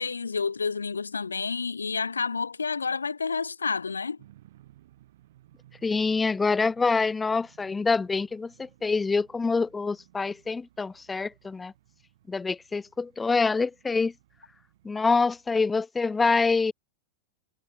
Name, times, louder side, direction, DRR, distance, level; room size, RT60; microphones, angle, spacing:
voice 1, 0.0-4.2, left 5 dB, 75° left, 1.6 m, -29 dB
sound 1, 4.2-15.5, right 14 dB, 55° right, 6.2 m, -59 dB
voice 2, 5.8-11.7 12.3-14.1 14.8-16.7, left 4 dB, 10° left, 0.3 m, -26 dB
figure-of-eight pair, 90°, 0 cm